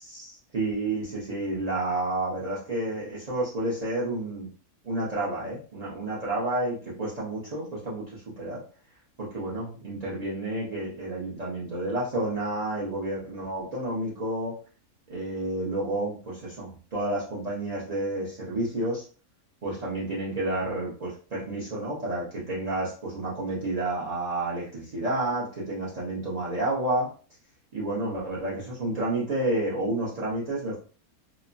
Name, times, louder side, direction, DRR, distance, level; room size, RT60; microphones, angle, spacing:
voice 1, 0.0-4.5 4.8-8.6 9.2-14.6 15.1-19.0 19.6-27.1 27.7-30.8, right 1 dB, 45° right, -7 dB, 0.5 m, -30 dB
3.0 x 2.0 x 2.5 m, 0.38 s
omnidirectional pair, 1.6 m